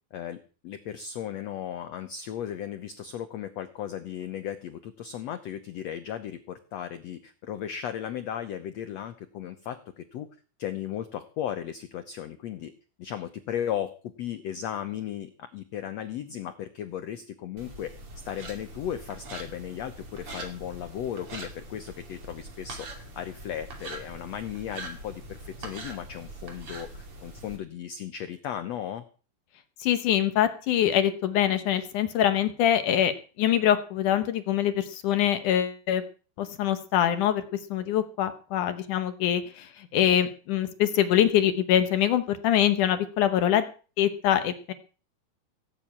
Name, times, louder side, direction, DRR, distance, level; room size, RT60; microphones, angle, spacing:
voice 1, 0.1-10.3 10.6-12.7 13.0-17.9 18.2-29.0, left 10 dB, 85° left, 10 dB, 1.4 m, -36 dB
sound 1, 17.6-27.6, right 2 dB, 40° right, 3.3 m, -42 dB
voice 2, 29.8-33.1 33.4-36.0 36.4-37.4 37.7-43.7 44.0-44.7, left 10 dB, 70° left, 11 dB, 2.2 m, -24 dB
17.0 x 6.9 x 8.7 m, 0.38 s
omnidirectional pair, 4.4 m